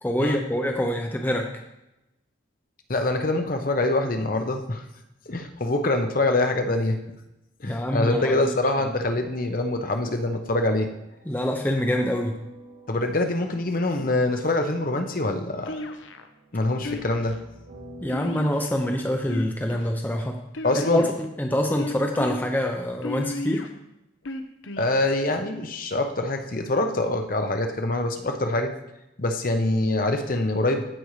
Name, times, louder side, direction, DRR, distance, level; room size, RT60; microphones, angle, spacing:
voice 1, 0.0-1.5 7.6-8.5 11.3-12.3 18.0-20.4 20.7-23.7, equal, 10° left, 2 dB, 0.6 m, -25 dB
voice 2, 2.9-4.8 5.3-7.0 7.6-10.9 12.9-15.7 16.5-17.4 20.6-21.0 24.8-28.7 29.2-30.8, left 2 dB, 45° left, 5 dB, 0.8 m, -24 dB
sound 1, 9.1-19.1, right 1 dB, 90° right, 3.7 m, -48 dB
sound 2, 15.7-16.3 16.8-17.4 18.1-18.8 19.2-19.9 20.5-21.2 21.8-22.4 23.0-23.7 24.2-24.9, left 3 dB, 85° left, 0.8 m, -33 dB
15.0 x 5.3 x 3.2 m, 0.90 s
head